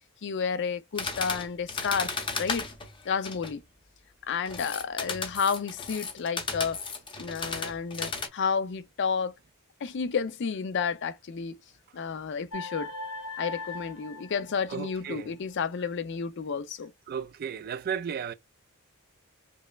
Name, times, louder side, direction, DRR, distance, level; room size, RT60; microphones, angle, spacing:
voice 1, 0.2-2.7 3.1-3.6 4.3-6.8 7.2-9.3 9.8-11.6 11.9-12.9 13.4-16.9, left 6 dB, 55° left, 0.4 m, -31 dB
sound 1, 1.0-3.5 4.5-8.3, left 4 dB, 25° left, 0.8 m, -34 dB
sound 2, 12.5-15.1, left 2 dB, 85° left, 1.2 m, -39 dB
voice 2, 14.7-15.3 17.1-18.3, right 7 dB, 45° right, 0.3 m, -34 dB
5.3 x 2.1 x 2.3 m
head